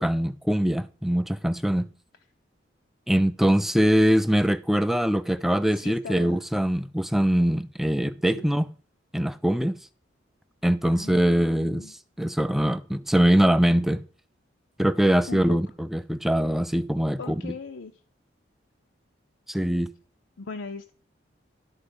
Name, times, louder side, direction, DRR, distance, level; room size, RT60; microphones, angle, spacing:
voice 1, 0.0-1.9 3.1-8.7 9.1-9.8 10.6-14.0 14.8-17.5 19.5-19.9, equal, ahead, 0.3 m, -23 dB
voice 2, 5.7-6.4 8.3-8.5 10.9-11.9 15.3-15.6 17.2-17.9 20.4-20.9, left 4 dB, 80° left, 0.6 m, -39 dB
11.5 x 4.2 x 5.3 m
head